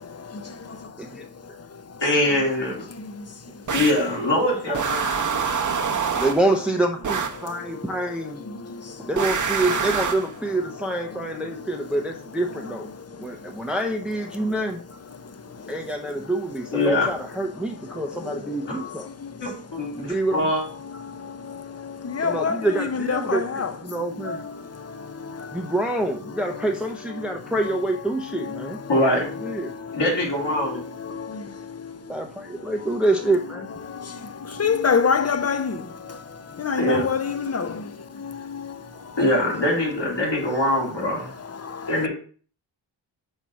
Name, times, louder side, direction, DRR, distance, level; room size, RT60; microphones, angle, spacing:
voice 1, 0.0-2.0 2.9-3.7 5.2-6.2 7.4-9.1 12.9-13.7 14.4-14.5 15.2-15.8 17.9-19.4 19.9-20.1 20.8-25.7 27.1-27.4 27.6-27.8 28.3-30.0 30.6-32.1 32.6-32.8 33.8-39.5 40.4-40.6 41.4-42.1, left 5 dB, 35° left, 0.6 m, -30 dB
voice 2, 2.0-2.8 3.7-5.0 16.7-17.1 18.7-18.8 19.4-20.6 28.9-29.2 29.9-30.8 36.8-37.0 39.2-41.3 41.9-42.1, left 1 dB, 65° left, 3.1 m, -23 dB
sound 1, 3.7-4.1 4.7-6.5 7.0-7.4 9.2-10.3, right 6 dB, 40° right, 0.8 m, -25 dB
voice 3, 6.2-8.4 9.1-12.9 13.2-14.8 15.7-19.1 20.0-20.5 22.2-24.5 25.5-28.8 29.4-29.7 32.1-33.7, right 2 dB, ahead, 0.6 m, -26 dB
5.6 x 4.5 x 6.2 m
wide cardioid pair, 125°, 46 cm